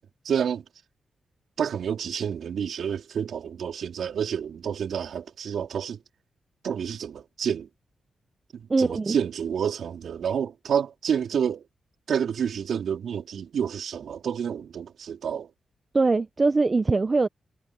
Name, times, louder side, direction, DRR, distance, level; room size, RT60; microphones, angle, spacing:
voice 1, 0.2-0.6 1.6-6.0 6.6-7.7 8.5-11.7 12.1-15.5, right 8 dB, 75° right, 3.6 m, -29 dB
voice 2, 8.7-9.2 15.9-17.3, right 3 dB, 40° right, 0.9 m, -22 dB
supercardioid pair, 45°, 0 cm